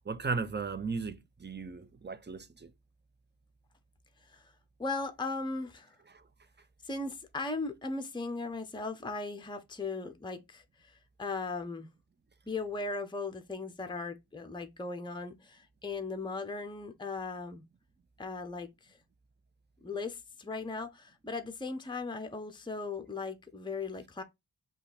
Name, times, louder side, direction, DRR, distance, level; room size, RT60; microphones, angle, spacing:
voice 1, 0.1-2.7 6.1-6.2, right 4 dB, 25° right, 0.6 m, -36 dB
voice 2, 4.8-5.9 6.8-11.9 12.5-17.6 18.2-19.0 19.8-24.2, left 3 dB, 10° left, 0.7 m, -38 dB
5.3 x 2.4 x 4.2 m
wide cardioid pair, 40°, 42 cm